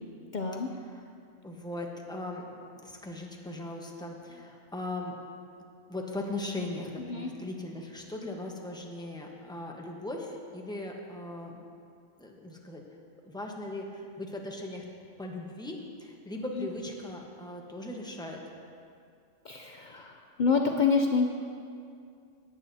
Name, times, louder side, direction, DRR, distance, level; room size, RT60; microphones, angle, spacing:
voice 1, 0.3-0.7 7.0-7.3 16.6-16.7 19.4-21.3, left 5 dB, 55° left, 3 dB, 0.5 m, -27 dB
voice 2, 1.4-2.4 2.8-5.2 5.9-11.6 12.2-12.8 13.2-14.8 15.2-18.4, left 2 dB, 5° left, 0 dB, 0.9 m, -39 dB
18.0 x 9.1 x 2.8 m, 2.3 s
omnidirectional pair, 1.4 m